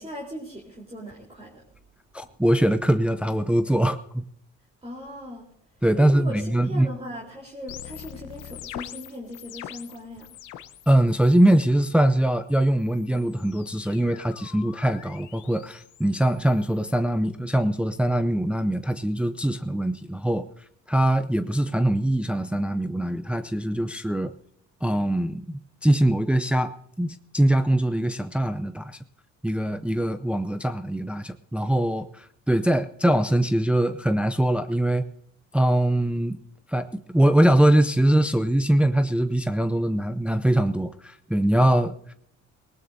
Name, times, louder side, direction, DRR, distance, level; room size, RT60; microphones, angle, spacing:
voice 1, 0.0-1.6 4.8-5.5 6.0-10.3, equal, 20° right, -4 dB, 3.8 m, -38 dB
voice 2, 2.1-4.2 5.8-6.9 10.9-20.5 20.9-24.3 24.8-26.7 27.0-29.0 29.4-35.1 35.5-36.4 36.7-42.1, right 1 dB, 5° right, 9 dB, 0.6 m, -22 dB
sound 1, 7.7-10.9 11.2-11.8 12.8-16.9, left 12 dB, 85° left, 0.9 m, -44 dB
19.0 x 19.0 x 2.7 m, 0.69 s
cardioid pair, 90°, 30 cm